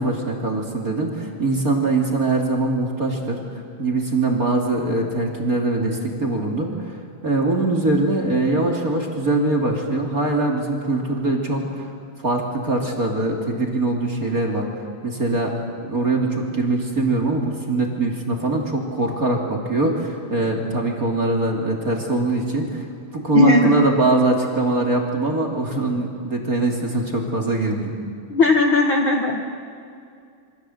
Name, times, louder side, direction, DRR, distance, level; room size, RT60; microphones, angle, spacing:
voice 1, 0.0-3.4 3.8-6.9 7.2-11.9 12.2-14.7 15.0-22.9 23.1-27.9, right 2 dB, 25° right, 2 dB, 3.0 m, -22 dB
voice 2, 23.3-23.7 28.3-29.5, left 3 dB, 50° left, 2 dB, 1.8 m, -17 dB
27.5 x 24.5 x 8.0 m, 2.4 s
omnidirectional pair, 3.9 m